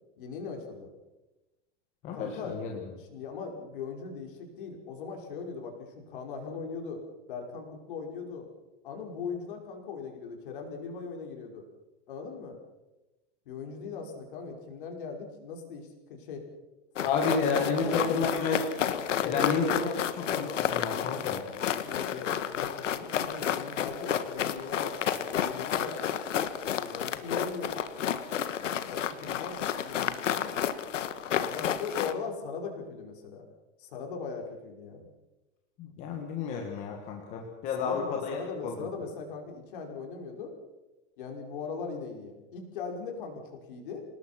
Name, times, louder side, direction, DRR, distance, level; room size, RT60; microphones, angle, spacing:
voice 1, 0.2-0.9 2.1-7.0 7.3-8.5 8.8-11.6 12.1-12.6 13.5-16.4 17.0-17.3 17.6-18.2 19.2-20.1 21.8-24.9 25.4-26.0 26.6-27.8 28.9-30.5 31.3-33.4 33.8-35.1 37.7-40.5 41.2-44.1, left 5 dB, 45° left, 2 dB, 5.5 m, -39 dB
voice 2, 2.0-2.7 17.0-18.6 19.2-19.6 20.3-21.4 35.8-38.4 38.6-38.7, left 5 dB, 20° left, 1 dB, 1.8 m, -30 dB
sound 1, 17.0-32.1, left 9 dB, 85° left, 1.9 m, -31 dB
27.5 x 19.5 x 6.0 m, 1.1 s
supercardioid pair, 180°, 36 cm